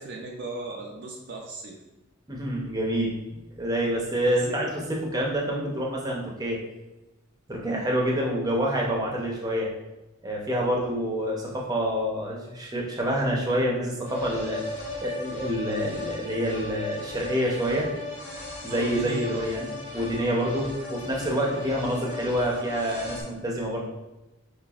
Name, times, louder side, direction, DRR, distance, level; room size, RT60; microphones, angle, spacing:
voice 1, 0.0-1.8 4.2-4.6 18.7-19.8, right 2 dB, 50° right, -1 dB, 0.5 m, -36 dB
voice 2, 2.3-3.1 3.6-6.6 7.5-9.7 10.2-14.6 15.0-17.9 18.6-23.8, equal, 15° right, -2 dB, 0.7 m, -27 dB
sound 1, 14.0-23.2, left 2 dB, 10° left, 1.0 m, -37 dB
5.8 x 3.2 x 2.4 m, 1.0 s
head